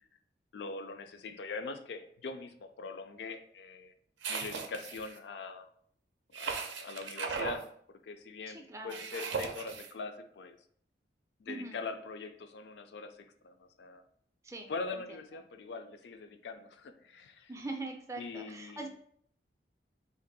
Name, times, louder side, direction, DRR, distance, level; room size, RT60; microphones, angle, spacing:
voice 1, 0.5-3.9 4.3-5.7 6.4-10.6 11.4-14.0 14.7-17.5 18.2-18.9, left 4 dB, 70° left, 7 dB, 0.4 m, -42 dB
sound 1, 4.2-5.2 6.3-7.6 8.9-9.9, right 5 dB, 85° right, 0.5 m, -37 dB
voice 2, 8.5-9.0 11.5-11.8 14.4-15.0 17.5-18.9, right 2 dB, 15° right, 3 dB, 0.4 m, -42 dB
2.8 x 2.6 x 3.9 m, 0.62 s
head